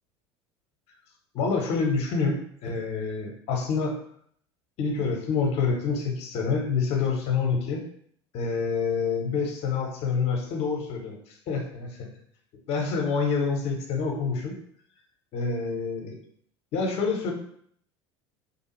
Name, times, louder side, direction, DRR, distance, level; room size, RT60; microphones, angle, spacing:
voice 1, 1.3-4.0 4.8-7.8 8.3-12.1 12.7-14.6 15.3-16.2 16.7-17.3, left 5 dB, 50° left, 2 dB, 0.7 m, -27 dB
2.6 x 2.3 x 3.0 m, 0.64 s
figure-of-eight pair, 70°, 14 cm